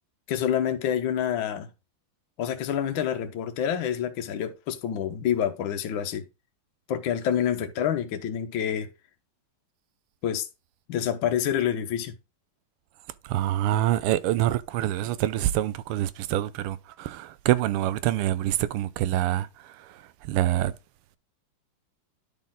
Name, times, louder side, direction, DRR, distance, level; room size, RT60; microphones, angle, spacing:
voice 1, 0.3-1.7 2.4-6.3 6.9-8.9 10.2-10.5 10.9-12.1, left 9 dB, 65° left, 1.6 m, -27 dB
voice 2, 13.3-19.5 20.3-20.7, right 13 dB, 90° right, 1.5 m, -25 dB
10.5 x 4.2 x 3.7 m
omnidirectional pair, 2.4 m